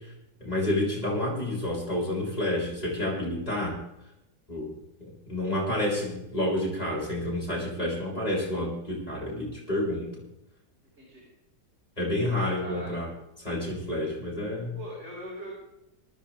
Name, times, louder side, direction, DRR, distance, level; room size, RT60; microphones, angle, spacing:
voice 1, 0.4-3.8 4.5-4.7 5.3-10.1 12.0-13.1 13.4-14.8, left 1 dB, 25° left, -6 dB, 7.9 m, -29 dB
voice 2, 12.6-12.9 14.8-15.5, right 1 dB, 40° right, -7 dB, 6.3 m, -40 dB
26.0 x 10.0 x 3.6 m, 0.84 s
omnidirectional pair, 1.8 m